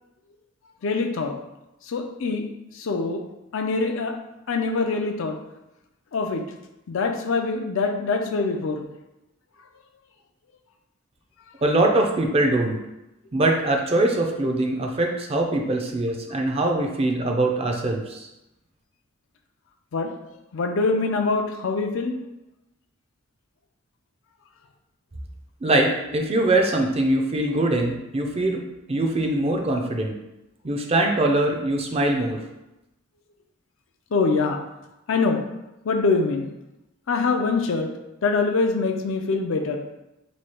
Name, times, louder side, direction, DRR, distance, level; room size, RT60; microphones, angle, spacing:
voice 1, 0.8-1.3 1.9-2.4 2.8-3.2 3.5-4.1 4.5-5.4 6.1-6.4 6.9-8.8 19.9-20.1 20.5-22.1 34.1-34.6 35.1-35.4 35.9-36.5 37.1-37.9 38.2-39.8, left 4 dB, 65° left, 4 dB, 0.4 m, -24 dB
voice 2, 11.6-12.8 13.3-18.2 25.6-28.6 28.9-30.2 30.6-32.4, right 2 dB, 30° right, 2 dB, 0.4 m, -22 dB
3.1 x 2.3 x 4.3 m, 0.93 s
head